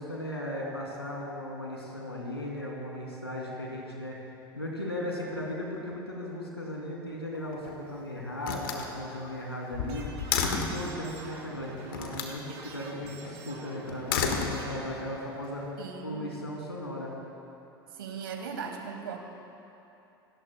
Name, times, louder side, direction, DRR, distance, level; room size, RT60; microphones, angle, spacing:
voice 1, 0.0-4.2 4.5-17.1, left 1 dB, 90° left, -2 dB, 3.0 m, -37 dB
Slam, 7.3-7.9 8.4-10.9 11.9-12.4 13.9-15.0, left 6 dB, 65° left, 1.6 m, -32 dB
sound 1, 9.8-14.7, right 4 dB, 50° right, 3.9 m, -46 dB
voice 2, 15.8-16.3 17.9-19.2, right 6 dB, 70° right, 3 dB, 2.2 m, -38 dB
27.5 x 18.5 x 2.3 m, 2.9 s
figure-of-eight pair, 75°, 13 cm